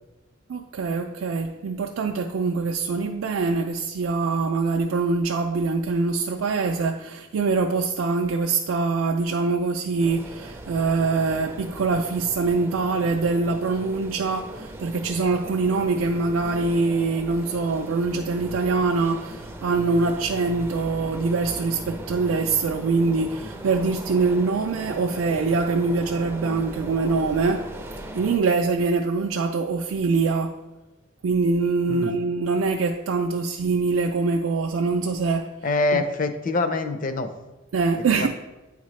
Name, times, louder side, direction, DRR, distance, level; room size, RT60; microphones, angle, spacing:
voice 1, 0.5-27.7 28.1-30.5 31.2-35.5 35.9-36.0 37.7-38.3, right 4 dB, 80° right, 2 dB, 0.4 m, -24 dB
sound 1, 10.0-28.4, right 1 dB, 10° right, 0.4 m, -38 dB
voice 2, 35.6-37.3 38.1-38.3, left 2 dB, 40° left, 7 dB, 0.5 m, -24 dB
9.4 x 3.7 x 3.2 m, 1.1 s
head